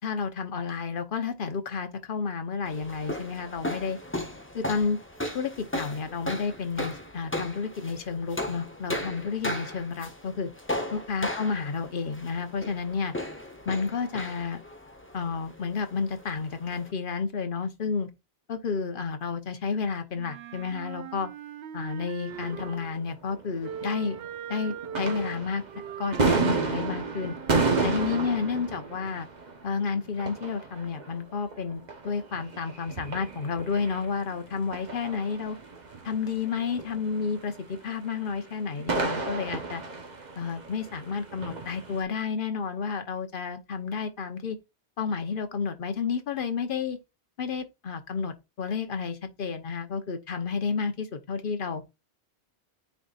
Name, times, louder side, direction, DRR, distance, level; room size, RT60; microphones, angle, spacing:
voice 1, 0.0-4.0 4.5-5.0 5.3-10.5 10.9-13.1 13.6-14.6 15.1-18.1 18.5-21.3 21.7-24.2 24.5-25.6 26.0-27.3 27.8-29.3 29.6-35.6 36.0-39.8 40.4-44.6 45.0-47.0 47.4-51.8, left 5 dB, 55° left, 1.1 m, -31 dB
sound 1, 2.6-16.9, left 1 dB, 10° left, 0.9 m, -36 dB
Wind instrument woodwind instrument, 20.1-23.1 23.6-28.5, right 8 dB, 75° right, 0.8 m, -40 dB
sound 2, 22.3-24.4 24.7-42.0, right 4 dB, 45° right, 1.1 m, -32 dB
9.6 x 4.1 x 2.4 m
omnidirectional pair, 1.1 m